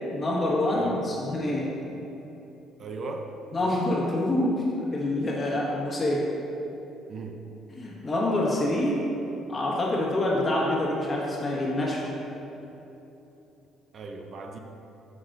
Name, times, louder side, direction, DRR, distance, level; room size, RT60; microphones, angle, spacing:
voice 1, 0.1-1.7 3.5-6.2 7.7-9.0 9.5-12.1, left 1 dB, 30° left, -4 dB, 1.4 m, -26 dB
voice 2, 0.8-1.1 2.8-3.4 7.1-7.4 13.9-14.6, right 3 dB, 50° right, 3 dB, 0.5 m, -37 dB
7.8 x 5.4 x 2.5 m, 3.0 s
supercardioid pair, 80°, 0 cm